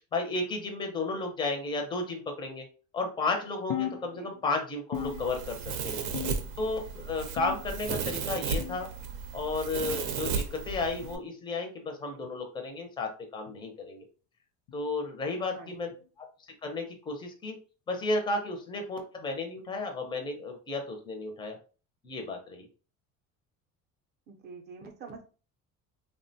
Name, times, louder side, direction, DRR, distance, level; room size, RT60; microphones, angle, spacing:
voice 1, 0.1-2.7 2.9-6.0 6.6-8.9 9.3-14.1 14.7-15.9 16.2-16.3 16.6-17.6 17.9-21.6 22.0-22.7, left 3 dB, 15° left, 3 dB, 0.4 m, -33 dB
sound 1, 3.7-4.5 4.9-5.7 6.1-6.7 7.4-8.0 8.6-9.0 9.8-10.0 11.0-11.2 12.2-12.4 13.5-13.6 14.7-14.9 15.9-16.1 17.1-17.2 18.3-18.4, left 11 dB, 65° left, 0.5 m, -38 dB
Domestic sounds home sounds, 4.9-11.2, right 5 dB, 85° right, 0.6 m, -35 dB
voice 2, 24.3-25.3, right 5 dB, 35° right, 4 dB, 0.5 m, -46 dB
3.4 x 2.1 x 2.6 m, 0.36 s
cardioid pair, 175°, 30 cm